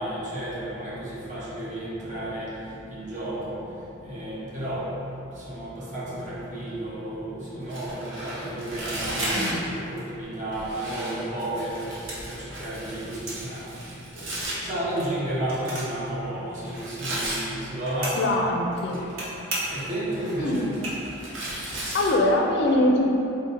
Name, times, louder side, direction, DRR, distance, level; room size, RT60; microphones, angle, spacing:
voice 1, 0.0-2.5 2.9-3.6 4.0-4.9 5.3-13.7 14.2-18.5 18.9-19.1 19.7-20.7 21.7-21.9, right 1 dB, 35° right, -8 dB, 0.8 m, -32 dB
Tearing, 7.6-9.7 10.5-14.5 16.7-17.4 18.7-19.2 19.6-22.1, right 1 dB, 65° right, 0.8 m, -35 dB
sound 1, 8.9-10.3 10.6-11.4 11.8-13.4 13.7-16.1 16.3-16.4 16.6-18.3 18.6-19.2 19.5-19.9 20.3-20.4 20.7-21.3, right 1 dB, 85° right, 1.0 m, -35 dB
voice 2, 18.1-19.0 20.4-20.6 21.9-23.2, left 1 dB, 55° left, 0 dB, 0.4 m, -22 dB
3.6 x 2.1 x 3.9 m, 2.9 s
head